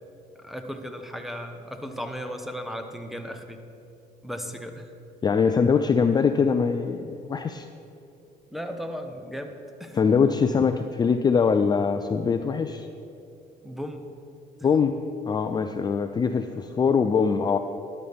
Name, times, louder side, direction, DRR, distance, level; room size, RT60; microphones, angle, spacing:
voice 1, 0.4-3.6 4.2-4.9 8.5-9.5 9.8-10.0 13.6-14.0, equal, ahead, 6 dB, 0.9 m, -35 dB
voice 2, 5.2-7.7 9.9-12.9 14.6-15.0 15.3-17.6, left 5 dB, 25° left, 8 dB, 0.4 m, -22 dB
12.5 x 11.0 x 3.5 m, 2.7 s
cardioid pair, 110°, 17 cm